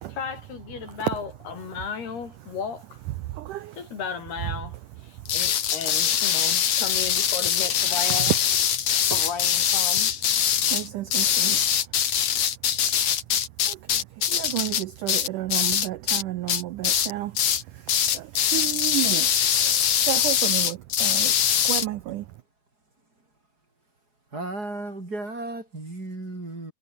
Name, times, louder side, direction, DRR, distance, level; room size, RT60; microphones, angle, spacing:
voice 1, 0.1-3.0 3.7-4.7 5.0-8.4 9.1-10.1, left 6 dB, 75° left, 6.3 m, -34 dB
voice 2, 3.2-3.8 5.3-5.4 8.1-8.3 10.7-11.8 13.7-17.4 17.7-21.3 21.6-22.3, right 15 dB, 75° right, 1.9 m, -32 dB
sound 1, 5.3-16.2 16.5-17.1 17.4-17.6 17.9-21.9, left 9 dB, 50° left, 2.5 m, -23 dB
voice 3, 24.3-26.7, right 2 dB, 20° right, 5.2 m, -34 dB
omnidirectional pair, 4.7 m